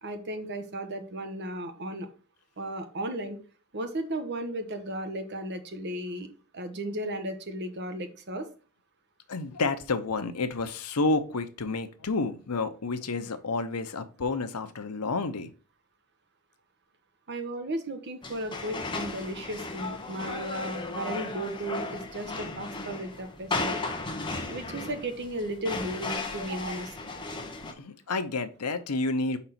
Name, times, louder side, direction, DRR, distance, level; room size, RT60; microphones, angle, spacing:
voice 1, 0.0-2.1 2.6-3.4 3.7-8.5 17.3-23.8 24.5-26.9, right 1 dB, 50° right, 7 dB, 1.1 m, -35 dB
voice 2, 9.3-15.5 27.7-29.4, left 3 dB, 90° left, 9 dB, 0.8 m, -30 dB
sound 1, 18.2-27.7, left 3 dB, 20° left, 1.1 m, -35 dB
5.1 x 4.2 x 5.8 m, 0.38 s
head